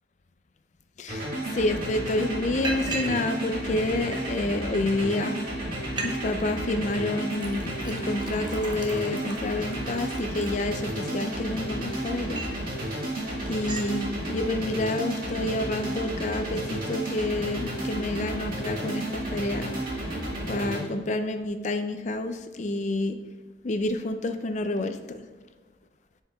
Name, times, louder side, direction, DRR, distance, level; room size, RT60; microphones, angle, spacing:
voice 1, 1.0-5.4 6.0-12.4 12.8-13.1 13.5-19.8 20.5-23.2 23.6-25.2, left 2 dB, 40° left, 8 dB, 0.4 m, -29 dB
sound 1, 1.1-20.8, right 1 dB, 50° right, 1.9 m, -32 dB
Liquid, 1.5-1.6 1.9-2.2 2.6-3.2 3.5-4.4 5.1-5.2 5.5-5.6 5.8-6.1 6.4-6.8 7.3-11.1 11.6-12.6 13.0-13.2 13.5-13.9, right 3 dB, 25° right, 0.7 m, -38 dB
10.0 x 4.6 x 2.4 m, 1.4 s
head